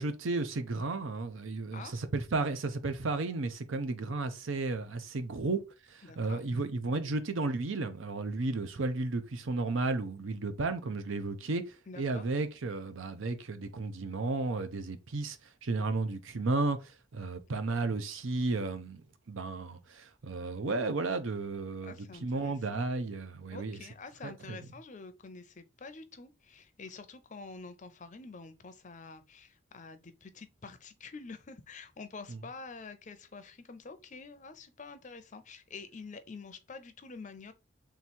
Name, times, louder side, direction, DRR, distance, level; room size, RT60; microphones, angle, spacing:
voice 1, 0.0-5.6 5.9-15.4 15.6-19.0 19.3-23.8 24.2-24.6 32.3-32.4, right 3 dB, 75° right, 0.7 m, -33 dB
voice 2, 6.0-6.4 11.9-12.2 21.8-22.9 23.5-37.5, left 4 dB, 35° left, 0.5 m, -47 dB
3.5 x 3.0 x 4.2 m
head